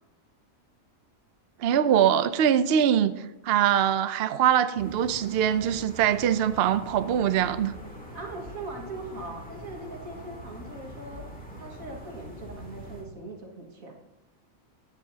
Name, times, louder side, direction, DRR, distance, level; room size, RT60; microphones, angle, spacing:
voice 1, 1.6-3.2 3.4-7.7, right 9 dB, 60° right, 0.6 m, -23 dB
sound 1, 4.8-13.0, equal, 5° left, 2.4 m, -43 dB
voice 2, 8.1-11.3 11.6-14.0, right 2 dB, 80° right, 2.2 m, -40 dB
16.0 x 9.1 x 2.8 m
omnidirectional pair, 1.4 m